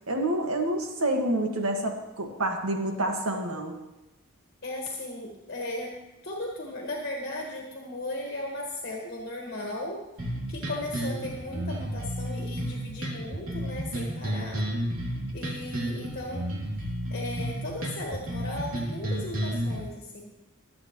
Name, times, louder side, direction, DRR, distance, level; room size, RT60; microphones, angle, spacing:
voice 1, 0.1-3.8, right 1 dB, 90° right, 2 dB, 1.9 m, -28 dB
voice 2, 4.6-5.9 6.2-10.0 10.5-14.6 15.3-16.5 17.1-20.3, left 1 dB, 50° left, -1 dB, 1.7 m, -36 dB
sound 1, 10.2-19.8, equal, 75° right, 3.0 m, -32 dB
25.5 x 8.5 x 3.2 m, 0.99 s
head